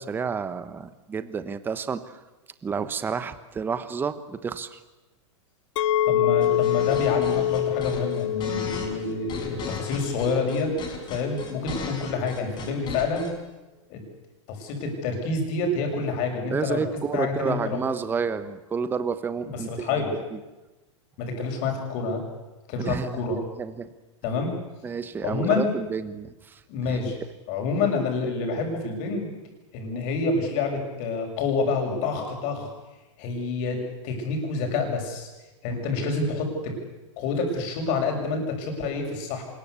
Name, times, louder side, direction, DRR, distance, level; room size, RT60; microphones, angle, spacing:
voice 1, 0.0-2.0 2.6-4.8 16.5-20.0 20.3-20.4 22.8-23.9 24.8-26.6 26.9-27.0 29.9-30.1, right 6 dB, 10° right, 12 dB, 1.1 m, -30 dB
Chink clink, 5.8-10.9, left 11 dB, 75° left, 0.8 m, -26 dB
voice 2, 6.1-10.7 11.1-13.3 13.9-14.0 14.5-16.8 17.1-17.8 19.5-20.1 21.2-22.2 22.7-23.4 24.2-24.5 25.2-25.7 26.7-27.2 27.5-29.3 29.7-32.7 33.2-33.8 34.0-35.3 35.6-36.7 37.2-39.4, left 4 dB, 45° left, 3 dB, 7.4 m, -27 dB
sound 1, 6.4-13.3, left 5 dB, 25° left, 5.8 m, -37 dB
24.5 x 21.5 x 8.4 m, 1.1 s
supercardioid pair, 150°, 16 cm